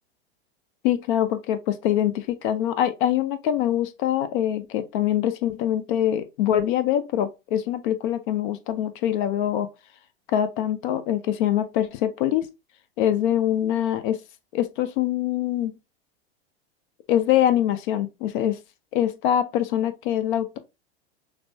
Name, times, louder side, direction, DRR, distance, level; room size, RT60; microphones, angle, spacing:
voice 1, 0.8-9.7 10.3-12.5 13.0-14.2 14.5-15.8 17.1-18.6 18.9-20.6, left 11 dB, 50° left, 0.7 m, -24 dB
6.0 x 2.1 x 2.8 m
figure-of-eight pair, 90°, 33 cm